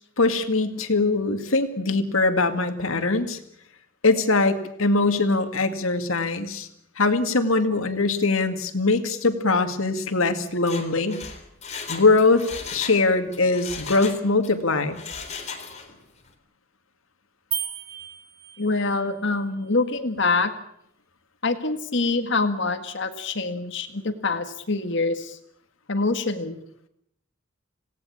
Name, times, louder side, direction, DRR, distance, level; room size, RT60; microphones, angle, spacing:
voice 1, 0.2-3.4 4.0-6.7 7.0-11.2 11.9-15.0, left 3 dB, 75° left, 8 dB, 2.2 m, -22 dB
Mechanisms, 10.5-13.0 13.3-14.5 14.9-16.0 16.3-16.4, left 5 dB, 35° left, 3.6 m, -36 dB
sound 1, 17.5-19.0, right 8 dB, 80° right, 3.3 m, -33 dB
voice 2, 18.6-20.5 21.4-25.4 25.9-26.6, left 3 dB, 55° left, 7 dB, 1.8 m, -25 dB
27.0 x 18.0 x 8.6 m, 0.76 s
head